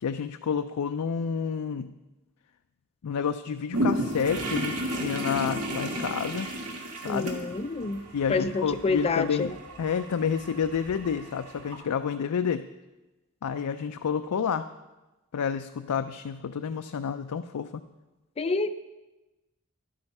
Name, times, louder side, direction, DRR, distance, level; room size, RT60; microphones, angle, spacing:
voice 1, 0.0-1.9 3.0-6.5 7.0-7.3 8.1-9.5 9.8-12.6 13.4-14.7 15.3-17.8, left 7 dB, 90° left, 9 dB, 0.4 m, -29 dB
sound 1, 3.7-11.8, equal, 85° right, 1.9 m, -33 dB
voice 2, 7.1-8.0 8.3-9.5 18.4-18.7, left 3 dB, 25° left, 12 dB, 0.4 m, -28 dB
12.0 x 8.7 x 5.4 m, 1.1 s
head